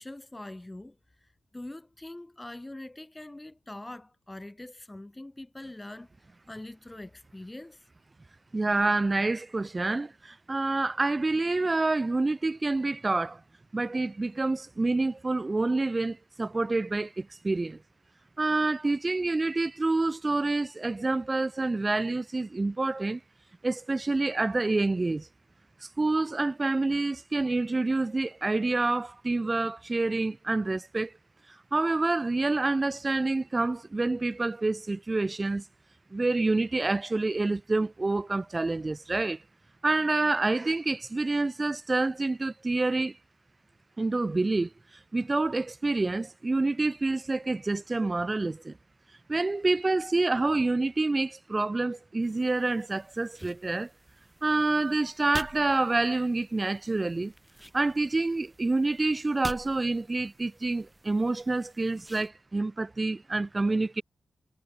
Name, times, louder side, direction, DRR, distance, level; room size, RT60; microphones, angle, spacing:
voice 1, 0.0-6.1 6.5-7.9, left 1 dB, 20° left, 2.0 m, -43 dB
voice 2, 8.5-13.4 13.7-17.8 18.4-23.2 23.6-25.3 26.0-31.1 31.7-35.6 36.1-39.4 39.8-43.2 44.0-44.7 45.1-48.7 49.3-53.9 54.4-57.3 57.7-64.0, right 2 dB, 30° right, 0.7 m, -27 dB
sound 1, 52.2-62.3, right 1 dB, 5° right, 1.9 m, -47 dB
cardioid pair, 55°, 0 cm